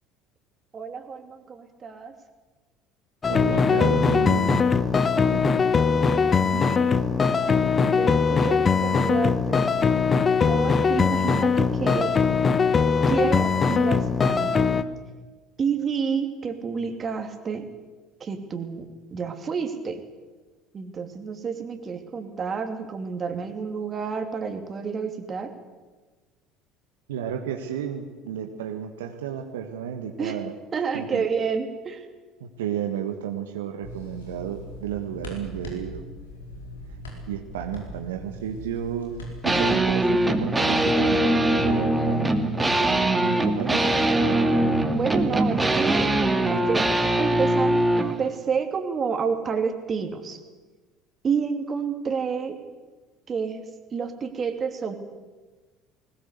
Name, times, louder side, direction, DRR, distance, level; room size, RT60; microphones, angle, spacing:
voice 1, 0.7-2.1 5.9-9.7 10.4-12.1 13.1-14.6 15.6-17.7 18.2-20.0 20.7-25.5 30.2-30.4 30.7-32.0 44.9-46.1 46.5-46.8 47.2-50.4 51.2-52.6 53.3-53.6 53.9-54.9, right 6 dB, 35° right, 7 dB, 2.8 m, -29 dB
sound 1, 3.2-14.8, left 5 dB, 30° left, 1.3 m, -21 dB
voice 2, 3.3-4.7 5.2-5.5 27.1-30.5 30.9-31.2 32.4-36.0 37.3-39.2 39.4-43.9, right 9 dB, 75° right, 5 dB, 1.5 m, -32 dB
sound 2, 33.8-39.8, left 1 dB, 80° left, 4.7 m, -40 dB
sound 3, 39.4-48.1, right 1 dB, 15° right, 2.4 m, -22 dB
20.5 x 19.5 x 8.3 m, 1.3 s
figure-of-eight pair, 60°, 0 cm